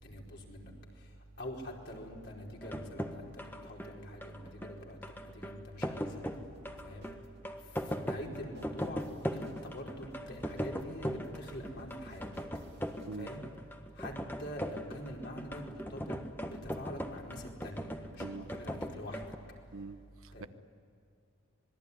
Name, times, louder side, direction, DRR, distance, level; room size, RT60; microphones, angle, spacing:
voice 1, 0.0-0.7 1.4-3.3 3.6-6.1 6.8-7.1 7.9-9.0 9.3-12.3 13.2-13.5 14.0-14.1 14.4-16.2 16.6-19.2 20.3-20.5, equal, 50° left, -1 dB, 4.8 m, -44 dB
sound 1, 2.6-19.3, equal, 10° left, 1.5 m, -40 dB
sound 2, 6.3-13.4, equal, 50° right, 2.6 m, -58 dB
voice 2, 19.7-20.5, right 3 dB, 70° right, 12 dB, 0.9 m, -44 dB
26.5 x 21.5 x 10.0 m, 2.5 s
head